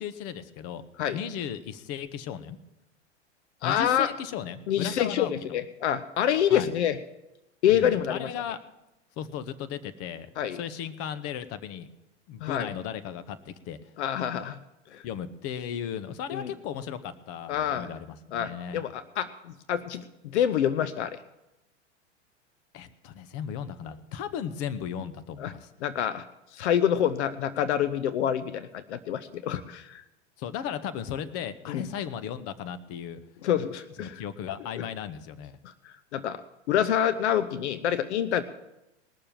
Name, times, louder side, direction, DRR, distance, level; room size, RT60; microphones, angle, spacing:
voice 1, 0.0-0.8 1.1-2.6 3.6-5.6 6.5-6.7 7.7-8.6 9.2-11.9 12.3-13.8 15.0-18.8 22.7-25.7 30.4-33.2 34.0-35.6, left 8 dB, 40° left, 13 dB, 1.0 m, -36 dB
voice 2, 3.6-4.1 4.7-7.0 7.6-8.3 10.4-10.6 12.4-12.7 14.0-14.6 14.9-15.0 16.3-16.5 17.5-17.9 18.3-21.2 25.4-25.5 25.8-26.3 26.5-30.0 31.7-31.9 33.4-34.1 35.6-36.4 36.7-38.4, left 10 dB, 70° left, 13 dB, 0.8 m, -27 dB
20.0 x 6.8 x 7.4 m, 0.96 s
hypercardioid pair, 105°, 36 cm